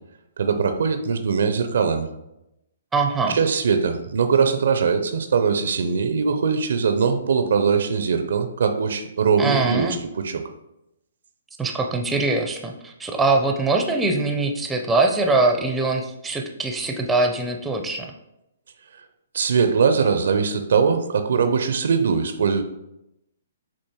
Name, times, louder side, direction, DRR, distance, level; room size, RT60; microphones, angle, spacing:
voice 1, 0.4-2.1 3.3-10.4 19.3-22.6, right 5 dB, 65° right, 8 dB, 0.4 m, -21 dB
voice 2, 2.9-3.4 9.4-10.0 11.6-18.1, right 3 dB, 10° right, 4 dB, 0.5 m, -22 dB
6.9 x 2.6 x 2.9 m, 0.87 s
figure-of-eight pair, 130°, 0 cm